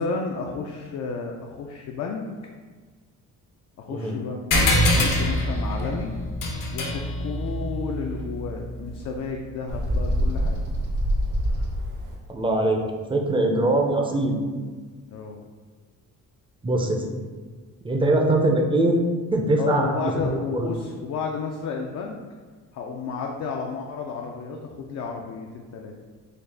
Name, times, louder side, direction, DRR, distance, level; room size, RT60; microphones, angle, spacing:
voice 1, 0.0-2.3 3.8-4.4 4.9-6.2 6.7-10.6 15.1-15.4 19.6-22.2 22.7-25.9, left 5 dB, 55° left, 0 dB, 0.4 m, -32 dB
sound 1, 4.5-9.4, left 1 dB, 70° left, 0.8 m, -25 dB
Bird, 9.7-12.1, equal, 65° right, 0.9 m, -25 dB
voice 2, 12.3-12.8 13.1-14.5 16.6-17.1 17.8-19.0 19.3-20.1 20.5-20.7, right 2 dB, 15° right, 2 dB, 0.5 m, -22 dB
3.9 x 2.3 x 3.3 m, 1.5 s
cardioid pair, 100°, 34 cm